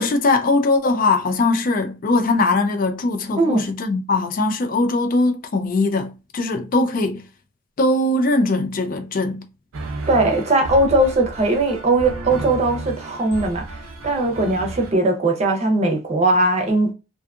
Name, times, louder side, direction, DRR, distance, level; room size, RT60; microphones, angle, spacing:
voice 1, 0.0-7.2 7.8-9.4, left 2 dB, 40° left, 0.3 m, -20 dB
voice 2, 3.4-3.7 10.1-13.6 14.0-16.9, right 2 dB, 30° right, 0.6 m, -19 dB
sound 1, 9.7-14.9, right 2 dB, 85° right, 0.6 m, -33 dB
2.6 x 2.3 x 2.3 m
head